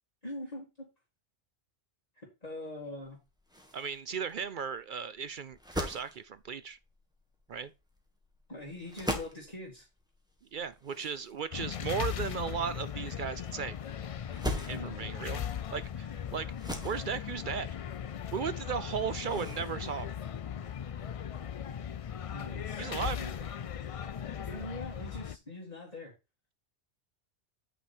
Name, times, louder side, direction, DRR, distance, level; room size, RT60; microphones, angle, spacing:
voice 1, 0.2-0.9 2.2-3.2 8.5-9.9 14.7-15.1 22.3-23.4 24.4-26.1, left 1 dB, 35° left, 2.6 m, -43 dB
sound 1, 3.0-21.0, equal, 5° right, 1.6 m, -43 dB
voice 2, 3.7-6.8 7.5-7.7 10.5-13.8 14.7-15.4 15.7-16.5 16.8-17.7 18.3-20.1 22.8-23.2, right 6 dB, 55° right, 0.6 m, -36 dB
sound 2, 11.5-25.4, left 8 dB, 65° left, 0.3 m, -38 dB
8.9 x 5.2 x 4.3 m
omnidirectional pair, 1.2 m